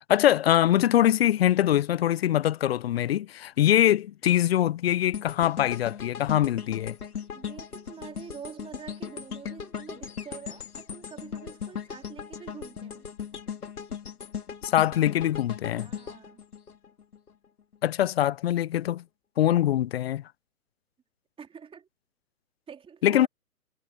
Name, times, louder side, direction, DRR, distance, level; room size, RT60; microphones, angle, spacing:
voice 1, 0.1-6.9 14.6-15.9 17.8-19.0 19.4-20.2 23.0-23.3, left 12 dB, 45° left, 0.6 m, -23 dB
sound 1, 5.1-17.3 17.7-17.9, left 7 dB, 80° left, 2.8 m, -38 dB
voice 2, 7.3-13.1 15.7-16.4 21.4-21.9 22.7-23.3, right 7 dB, 10° right, 3.7 m, -46 dB
hypercardioid pair, 135°, 44 cm